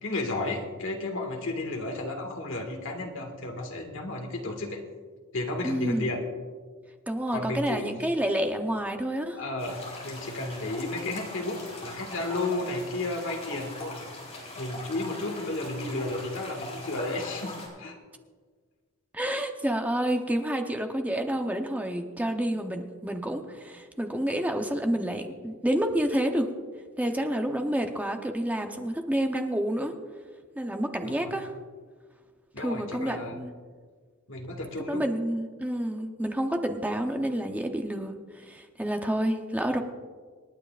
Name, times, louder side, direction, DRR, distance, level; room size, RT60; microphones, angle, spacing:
voice 1, 0.0-4.8 5.3-6.2 7.3-7.9 9.3-14.0 14.6-18.0 31.0-31.3 32.5-33.4 34.3-35.0, left 2 dB, 60° left, 2 dB, 1.9 m, -33 dB
voice 2, 5.6-6.1 7.1-9.4 19.1-26.5 27.0-30.0 30.6-31.5 32.6-33.5 34.9-39.8, right 1 dB, 5° right, 4 dB, 0.7 m, -29 dB
sound 1, 9.6-17.7, left 2 dB, 30° left, 4.0 m, -41 dB
27.5 x 9.5 x 2.5 m, 1.5 s
head